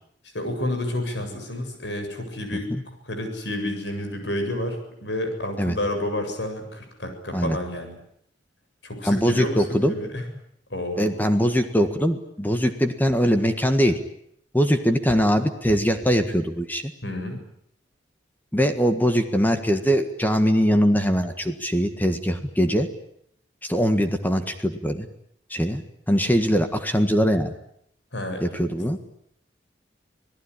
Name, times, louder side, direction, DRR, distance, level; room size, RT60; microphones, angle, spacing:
voice 1, 0.3-2.7 3.0-8.0 8.8-10.2 10.7-11.2 17.0-17.4 28.1-28.6, left 1 dB, 75° left, 5 dB, 7.6 m, -30 dB
voice 2, 9.0-9.9 11.0-14.0 14.5-16.8 18.5-22.9 23.6-25.1 25.5-25.8 26.1-27.5 28.4-29.0, equal, 10° left, 7 dB, 1.6 m, -22 dB
27.0 x 18.5 x 10.0 m, 0.71 s
head